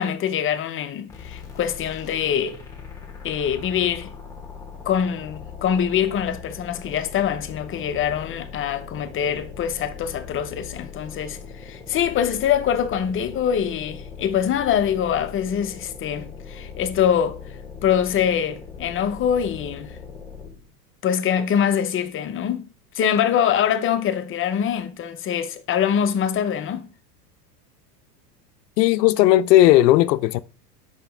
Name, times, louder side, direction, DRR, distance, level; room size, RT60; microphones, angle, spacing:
voice 1, 0.0-2.6 3.2-4.1 4.8-20.0 21.0-26.9, left 8 dB, 25° left, 0.6 m, -24 dB
sound 1, 1.1-20.7, left 6 dB, 5° left, 1.3 m, -40 dB
voice 2, 28.8-30.4, left 14 dB, 85° left, 0.6 m, -15 dB
5.8 x 5.3 x 3.4 m
supercardioid pair, 115°, 48 cm